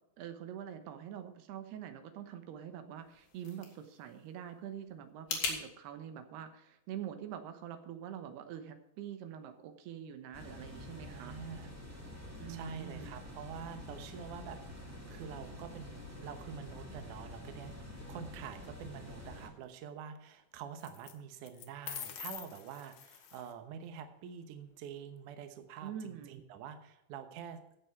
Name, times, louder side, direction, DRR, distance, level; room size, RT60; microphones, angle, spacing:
voice 1, 0.2-11.4 12.4-13.1 25.8-26.4, right 9 dB, 90° right, 8 dB, 3.2 m, -45 dB
sound 1, 3.0-5.6, left 5 dB, 90° left, 4.2 m, -41 dB
sound 2, 10.3-19.5, left 1 dB, 10° right, 0.7 m, -48 dB
voice 2, 11.0-11.7 12.2-14.6 15.1-27.6, right 7 dB, 65° right, 7 dB, 2.2 m, -47 dB
sound 3, 17.9-18.5 20.8-21.1 21.5-23.5, left 10 dB, 70° left, 2.2 m, -46 dB
16.0 x 6.3 x 4.6 m, 0.83 s
omnidirectional pair, 4.5 m